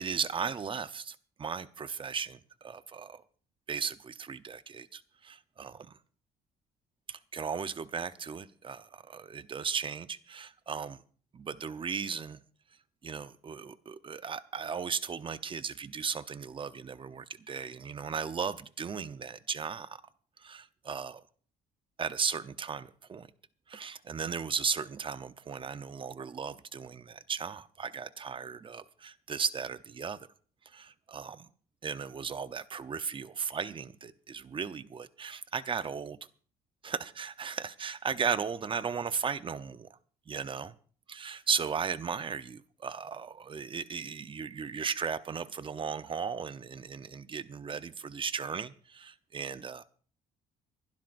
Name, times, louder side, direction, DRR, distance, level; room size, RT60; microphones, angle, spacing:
voice 1, 0.0-3.2 3.7-6.0 7.1-11.0 11.3-12.4 13.0-20.0 20.4-21.2 22.0-23.3 23.7-30.2 30.7-31.5 31.8-36.2 36.8-39.9 40.3-40.7 41.1-49.8, right 6 dB, 30° right, 13 dB, 0.8 m, -36 dB
27.5 x 12.0 x 2.6 m, 0.43 s
cardioid pair, 110°, 17 cm